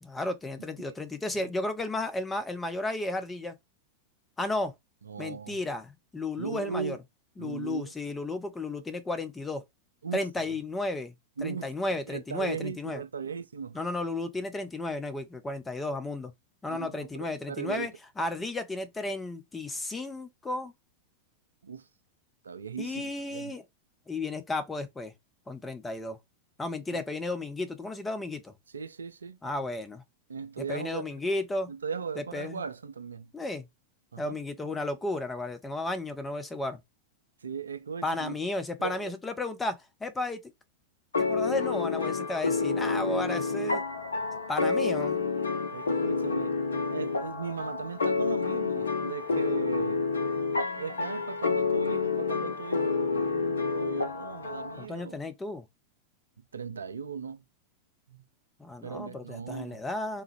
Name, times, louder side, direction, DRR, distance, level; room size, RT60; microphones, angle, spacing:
voice 1, 0.0-3.6 4.4-4.7 5.2-7.0 7.4-9.6 10.1-11.1 11.4-13.0 13.7-16.3 16.6-20.7 22.8-23.6 24.1-25.1 25.5-26.2 26.6-28.5 29.4-30.0 30.6-31.7 32.2-32.6 33.3-33.7 34.2-36.8 38.0-40.4 41.3-43.8 44.5-45.2 54.8-55.6 58.6-60.2, left 2 dB, 10° left, 0.5 m, -33 dB
voice 2, 5.1-5.6 6.4-7.0 7.4-7.9 10.0-10.2 11.4-11.7 12.1-13.8 16.7-17.9 21.6-21.8 22.4-23.0 23.3-23.5 26.9-27.0 28.7-29.4 30.3-31.2 31.7-33.3 34.1-34.4 37.4-38.4 38.8-39.1 45.7-46.6 46.9-50.0 50.8-55.2 56.5-57.4 58.1-58.2 58.8-59.8, right 6 dB, 70° right, 0.3 m, -37 dB
sound 1, 41.1-54.9, left 4 dB, 70° left, 0.5 m, -29 dB
3.4 x 2.0 x 3.0 m
figure-of-eight pair, 90°, 0 cm